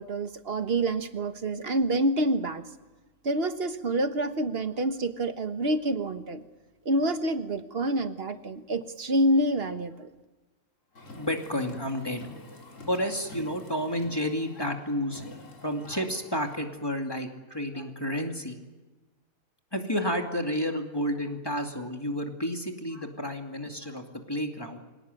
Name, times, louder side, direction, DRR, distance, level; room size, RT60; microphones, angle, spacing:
voice 1, 0.0-2.6 3.2-6.4 6.8-10.1, right 1 dB, 45° right, 9 dB, 1.5 m, -27 dB
Car, 10.9-16.6, left 2 dB, 65° left, 3.5 m, -48 dB
voice 2, 11.2-12.6 12.9-18.6 19.7-24.8, equal, 15° left, 3 dB, 2.5 m, -31 dB
26.0 x 18.0 x 9.3 m, 1.2 s
omnidirectional pair, 1.4 m